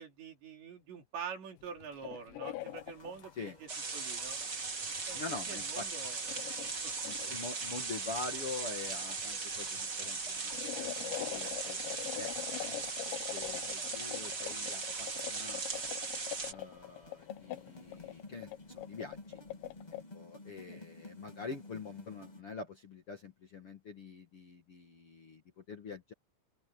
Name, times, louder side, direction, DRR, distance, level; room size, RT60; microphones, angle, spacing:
voice 1, 0.0-4.4 5.1-6.2 6.8-6.9 20.7-20.8, right 6 dB, 80° right, 6.6 m, -46 dB
sound 1, 1.6-3.3 3.7-3.8 4.2-20.0, left 15 dB, 90° left, 3.2 m, -44 dB
sound 2, 2.6-22.4, left 2 dB, 25° left, 0.8 m, -56 dB
sound 3, 3.7-16.5, right 4 dB, 40° right, 1.2 m, -38 dB
voice 2, 5.1-5.9 7.0-10.5 10.8-12.3 12.6-12.8 13.3-15.8 16.4-19.4 20.1-26.1, left 4 dB, 50° left, 1.8 m, -45 dB
open air
omnidirectional pair, 5.0 m